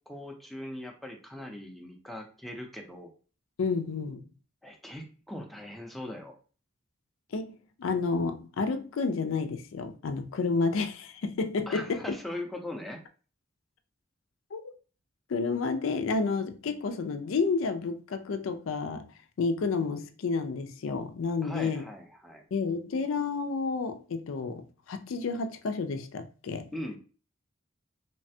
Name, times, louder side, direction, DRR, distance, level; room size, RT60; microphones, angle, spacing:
voice 1, 0.1-3.1 4.6-6.3 11.7-13.0 21.4-22.4 26.7-27.0, left 1 dB, ahead, 0.5 m, -40 dB
voice 2, 3.6-4.3 7.3-12.0 14.5-14.7 15.3-19.1 19.4-21.8 22.5-26.7, left 4 dB, 90° left, 0.4 m, -30 dB
3.2 x 2.1 x 2.7 m
head